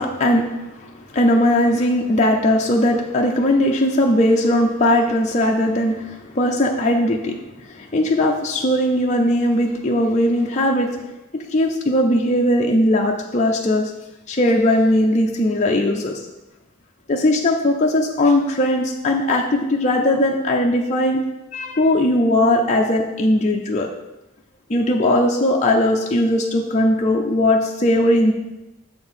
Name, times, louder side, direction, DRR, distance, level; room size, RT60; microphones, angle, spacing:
voice 1, 0.0-7.3 7.6-10.9 11.5-13.9 14.3-16.1 17.1-21.2 21.5-23.9 24.7-28.3, left 1 dB, 30° left, 0 dB, 0.5 m, -19 dB
6.8 x 4.5 x 5.5 m, 0.98 s
head